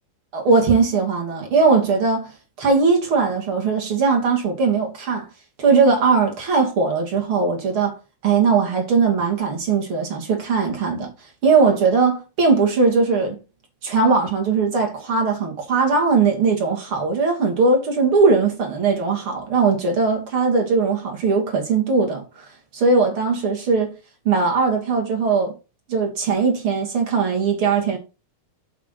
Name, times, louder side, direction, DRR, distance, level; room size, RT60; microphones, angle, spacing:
voice 1, 0.3-2.3 2.6-5.3 5.6-7.9 8.2-11.1 11.4-13.4 13.8-22.2 22.7-23.9 24.2-25.5 25.9-28.0, right 4 dB, 45° right, 3.1 m, -19 dB
8.4 x 7.4 x 4.0 m
omnidirectional pair, 3.6 m